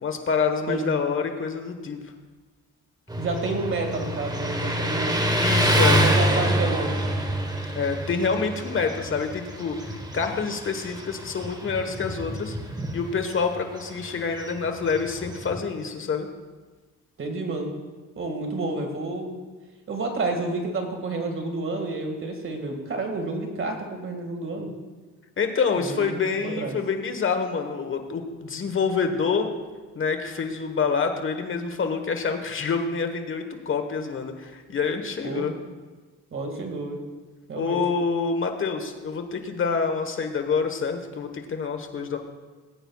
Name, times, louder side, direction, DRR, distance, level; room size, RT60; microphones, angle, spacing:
voice 1, 0.0-2.0 5.4-6.1 7.7-12.5 12.9-16.3 25.4-29.5 29.9-35.5 37.6-42.2, left 5 dB, 45° left, 6 dB, 1.3 m, -27 dB
Motorcycle, 3.1-15.7, equal, 15° right, 1.2 m, -27 dB
voice 2, 3.2-5.2 5.9-6.9 17.2-17.7 18.2-19.4 19.9-24.7 25.7-26.8 35.2-35.5 36.3-37.0 37.5-37.8, right 3 dB, 45° right, 3 dB, 2.0 m, -30 dB
19.0 x 8.9 x 2.4 m, 1.3 s
cardioid pair, 90°, 30 cm